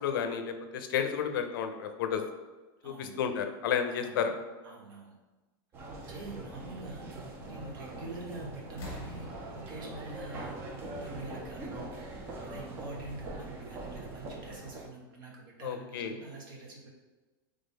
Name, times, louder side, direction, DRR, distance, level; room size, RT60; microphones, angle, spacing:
voice 1, 0.0-2.2 2.8-4.3 15.6-16.1, left 7 dB, 65° left, 7 dB, 0.5 m, -31 dB
voice 2, 2.8-3.2 3.9-4.2 4.6-5.1 6.1-7.1 7.5-9.3 9.5-12.0 12.4-16.9, right 2 dB, 60° right, -2 dB, 1.2 m, -45 dB
sound 1, 5.7-14.9, right 2 dB, 20° right, 0.4 m, -42 dB
sound 2, 8.0-8.3 8.7-11.4 12.5-12.6, left 4 dB, 30° left, 1.2 m, -48 dB
3.7 x 3.4 x 4.0 m, 1.2 s
supercardioid pair, 180°, 12 cm